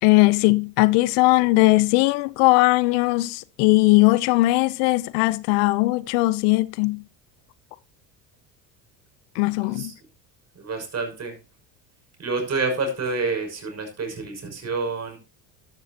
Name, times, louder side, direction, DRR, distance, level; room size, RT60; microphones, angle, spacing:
voice 1, 0.0-7.0 9.4-9.9, left 21 dB, 70° left, 0.8 m, -19 dB
voice 2, 10.6-11.3 12.2-15.2, right 3 dB, 35° right, 6.2 m, -28 dB
13.0 x 12.0 x 2.9 m
hypercardioid pair, 75°, 45 cm